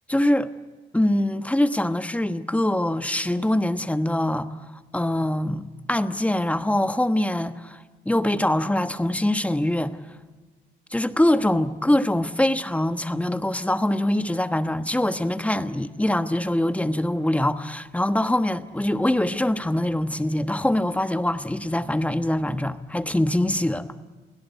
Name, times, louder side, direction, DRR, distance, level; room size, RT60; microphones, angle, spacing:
voice 1, 0.1-0.5 0.9-4.5 4.9-10.0 10.9-23.9, left 1 dB, 5° left, 1.2 m, -23 dB
29.0 x 17.0 x 8.1 m
cardioid pair, 90°, 20 cm